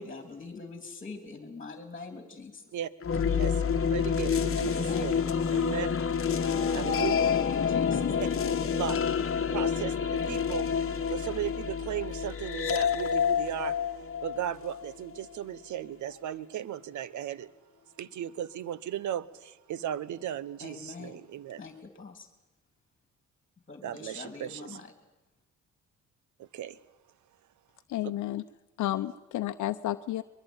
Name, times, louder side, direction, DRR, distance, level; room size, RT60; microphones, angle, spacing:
voice 1, 0.0-2.6 4.6-5.1 6.6-8.0 20.6-21.2 21.6-22.3 23.7-24.9, left 3 dB, 25° left, 7 dB, 3.2 m, -43 dB
sound 1, 3.0-15.2, left 7 dB, 45° left, 1.4 m, -28 dB
sound 2, 3.1-9.5, left 3 dB, 25° right, 5.1 m, -50 dB
voice 2, 3.4-5.9 6.7-7.3 8.2-8.3 8.7-9.0 9.5-10.7 11.1-13.8 14.2-17.5 18.0-21.6 23.8-24.8 26.4-26.8, right 11 dB, 75° right, 18 dB, 1.2 m, -36 dB
voice 3, 27.9-28.4 28.8-30.2, left 14 dB, 75° left, 9 dB, 0.8 m, -31 dB
22.5 x 22.0 x 9.0 m, 1.0 s
cardioid pair, 90°, 30 cm